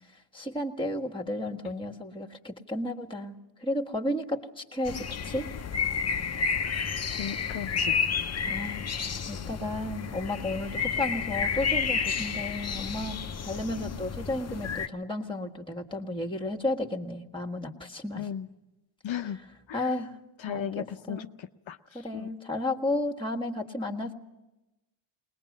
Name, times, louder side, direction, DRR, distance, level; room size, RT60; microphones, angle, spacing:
voice 1, 0.3-5.5 8.5-8.8 9.3-13.2 13.4-18.3 19.7-20.2 20.5-21.3 21.9-24.1, left 1 dB, 10° left, 3 dB, 1.6 m, -33 dB
sound 1, 4.8-14.9, left 6 dB, 30° left, 0.7 m, -31 dB
voice 2, 7.1-7.9 18.2-18.5 19.0-19.4 19.7-19.9 20.4-22.3, left 9 dB, 65° left, 7 dB, 0.7 m, -36 dB
21.0 x 20.0 x 7.3 m, 1.0 s
cardioid pair, 75°, 49 cm